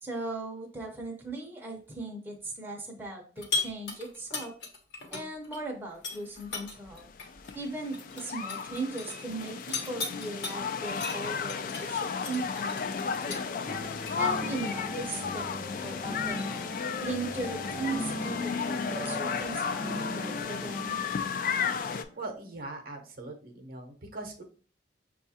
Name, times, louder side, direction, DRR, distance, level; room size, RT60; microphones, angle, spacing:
voice 1, 0.0-4.5 5.1-7.0 7.5-13.4 14.2-16.5 17.0-21.0, right 2 dB, 10° right, -1 dB, 0.6 m, -38 dB
sound 1, 3.4-5.6 5.9-10.5 10.9-14.1, left 4 dB, 75° left, 1.0 m, -37 dB
sound 2, 6.9-22.0, left 6 dB, 50° left, 0.3 m, -34 dB
sound 3, 13.6-22.3, equal, 30° left, 0.8 m, -41 dB
voice 2, 22.2-24.4, right 2 dB, 50° right, 4 dB, 0.7 m, -41 dB
6.2 x 2.3 x 2.7 m, 0.41 s
head